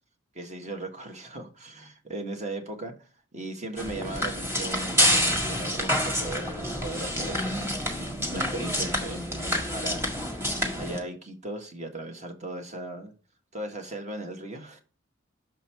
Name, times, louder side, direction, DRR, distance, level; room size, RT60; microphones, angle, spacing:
voice 1, 0.3-2.9 3.3-10.4 10.7-13.1 13.5-14.8, right 1 dB, 35° right, 1.5 m, -37 dB
sound 1, 3.8-11.0, equal, 15° right, 1.7 m, -28 dB
6.5 x 5.4 x 4.4 m
head